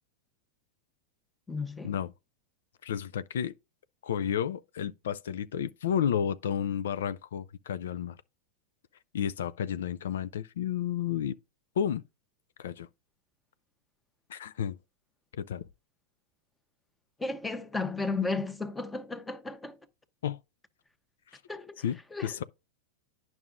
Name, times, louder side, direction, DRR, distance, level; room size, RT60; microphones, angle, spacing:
voice 1, 1.5-1.9 17.2-19.8 21.5-21.8 22.1-22.4, left 3 dB, 10° left, 0.9 m, -34 dB
voice 2, 2.8-3.5 4.0-8.2 9.1-11.4 11.8-12.0 12.6-12.9 14.3-14.8 15.3-15.7 20.2-20.4 21.3-21.4 21.8-22.0 22.2-22.4, left 9 dB, 85° left, 0.4 m, -31 dB
9.4 x 5.9 x 2.5 m
hypercardioid pair, 125°, 0 cm